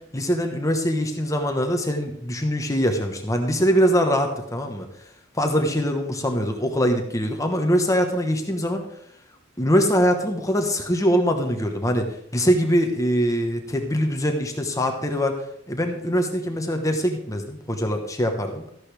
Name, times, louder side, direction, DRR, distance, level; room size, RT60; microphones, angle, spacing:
voice 1, 0.1-4.9 5.3-8.8 9.6-15.4 15.7-18.6, equal, 15° left, 4 dB, 1.2 m, -23 dB
14.0 x 11.0 x 3.4 m, 0.73 s
head